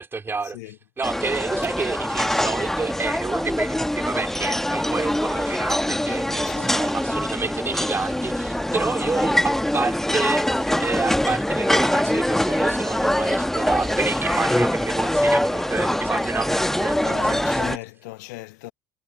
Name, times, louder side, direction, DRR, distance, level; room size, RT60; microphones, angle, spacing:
voice 1, 0.0-17.6, right 4 dB, 25° right, 2.8 m, -29 dB
sound 1, 1.0-17.8, left 1 dB, 5° left, 1.3 m, -23 dB
voice 2, 6.3-6.8 17.0-18.7, left 22 dB, 70° left, 0.9 m, -38 dB
hypercardioid pair, 65°, 10 cm